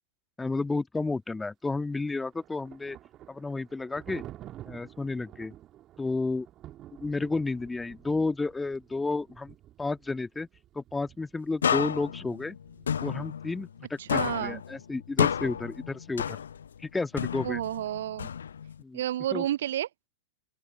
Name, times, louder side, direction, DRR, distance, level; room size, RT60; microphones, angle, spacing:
voice 1, 0.4-3.0 3.3-4.2 4.7-5.5 6.0-6.5 7.0-10.5 10.7-12.6 13.0-16.4 16.8-17.6 18.8-19.0 19.3-19.5, left 3 dB, 10° left, 1.6 m, -31 dB
Thunder, 1.9-13.7, right 13 dB, 30° right, 2.9 m, -50 dB
sound 1, 11.6-13.8 14.1-16.8 17.2-18.8, left 8 dB, 65° left, 0.3 m, -31 dB
voice 2, 14.0-14.6 17.4-18.3 18.9-19.9, right 12 dB, 55° right, 0.5 m, -30 dB
open air
figure-of-eight pair, 100°, 0 cm